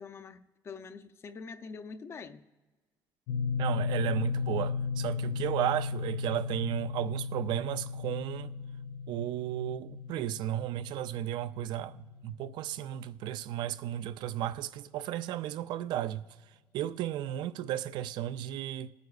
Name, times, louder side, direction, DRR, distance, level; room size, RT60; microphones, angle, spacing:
voice 1, 0.0-2.4, left 5 dB, 35° left, 0.5 m, -45 dB
sound 1, 3.3-13.2, left 5 dB, 85° left, 0.5 m, -35 dB
voice 2, 3.6-8.5 9.1-16.2 16.7-18.9, right 12 dB, 70° right, 0.4 m, -34 dB
21.5 x 9.4 x 2.4 m
cardioid pair, 130°, 8 cm